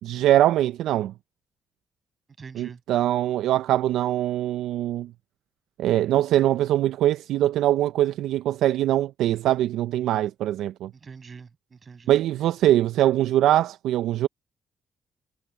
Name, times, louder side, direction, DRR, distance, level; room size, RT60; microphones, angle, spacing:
voice 1, 0.0-1.1 2.6-5.1 5.8-10.9 12.1-14.3, right 13 dB, 85° right, 0.4 m, -22 dB
voice 2, 2.4-2.8 11.0-12.1, right 5 dB, 40° right, 6.4 m, -44 dB
cardioid pair, 90°, 0 cm